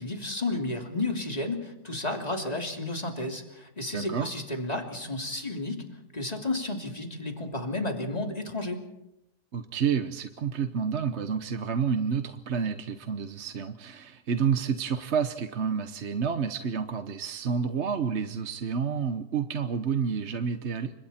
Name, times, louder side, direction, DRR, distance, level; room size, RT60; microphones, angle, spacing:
voice 1, 0.0-5.9 6.1-8.8, left 2 dB, 25° left, 3 dB, 3.1 m, -32 dB
voice 2, 3.9-4.3 9.5-20.9, right 6 dB, 50° right, 8 dB, 1.1 m, -29 dB
29.5 x 26.0 x 4.4 m, 0.86 s
omnidirectional pair, 1.8 m